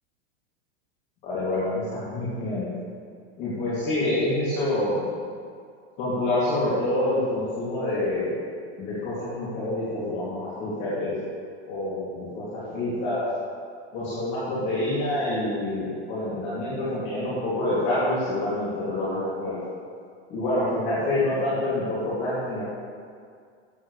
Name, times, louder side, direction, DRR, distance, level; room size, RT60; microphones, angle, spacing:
voice 1, 1.2-2.7 3.4-5.0 6.0-8.4 8.8-11.1 11.7-13.3 13.9-19.6 20.3-22.6, left 1 dB, 30° left, -11 dB, 2.5 m, -27 dB
13.5 x 7.8 x 3.2 m, 2.2 s
supercardioid pair, 170°, 33 cm